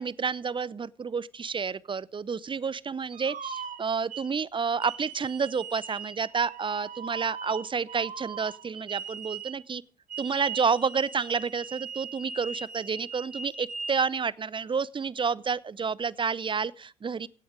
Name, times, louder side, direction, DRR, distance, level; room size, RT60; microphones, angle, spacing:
voice 1, 0.0-9.8 10.2-17.3, right 5 dB, 25° right, 0.7 m, -30 dB
sound 1, 3.1-4.3 4.8-9.6 10.1-14.1, right 5 dB, 40° right, 2.1 m, -40 dB
16.5 x 6.6 x 8.9 m
figure-of-eight pair, 50°, 20 cm